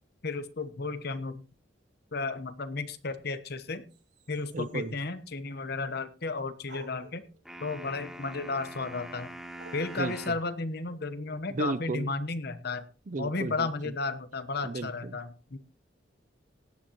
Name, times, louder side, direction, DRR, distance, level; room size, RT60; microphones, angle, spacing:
voice 1, 0.2-1.4 2.1-3.9 4.3-7.2 7.6-9.3 9.7-12.8 13.2-15.6, left 3 dB, 60° left, 11 dB, 1.1 m, -33 dB
sound 1, 3.9-4.9 6.6-8.5 9.6-11.8, right 2 dB, 70° right, 4.9 m, -55 dB
voice 2, 4.5-4.9 10.0-10.1 11.5-12.1 13.1-13.7 14.6-15.2, right 3 dB, 45° right, 16 dB, 0.5 m, -34 dB
sound 2, 7.5-10.5, right 1 dB, 5° right, 2.4 m, -44 dB
17.0 x 10.5 x 3.0 m, 0.33 s
head